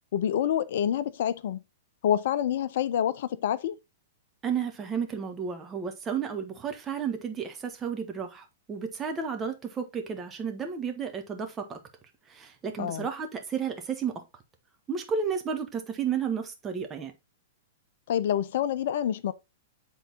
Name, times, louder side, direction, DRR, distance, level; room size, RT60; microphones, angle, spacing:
voice 1, 0.1-1.6 2.0-3.8 12.8-13.1 18.1-19.3, left 10 dB, 60° left, 0.5 m, -27 dB
voice 2, 4.4-11.8 12.3-14.2 14.9-17.1, right 6 dB, 20° right, 1.5 m, -32 dB
8.3 x 3.9 x 4.1 m
hypercardioid pair, 110°, 0 cm